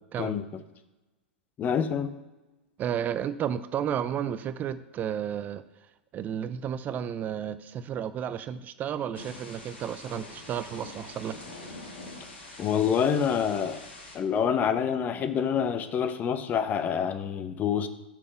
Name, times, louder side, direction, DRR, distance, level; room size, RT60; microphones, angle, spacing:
voice 1, 1.6-2.1 12.6-13.8 14.1-17.9, left 7 dB, 30° left, 10 dB, 0.7 m, -27 dB
voice 2, 2.8-5.6 6.1-11.4, right 9 dB, 30° right, 13 dB, 0.4 m, -32 dB
Thunder / Rain, 9.1-14.2, left 2 dB, 75° left, 2.0 m, -44 dB
6.0 x 5.7 x 5.7 m, 1.1 s
hypercardioid pair, 100°, 6 cm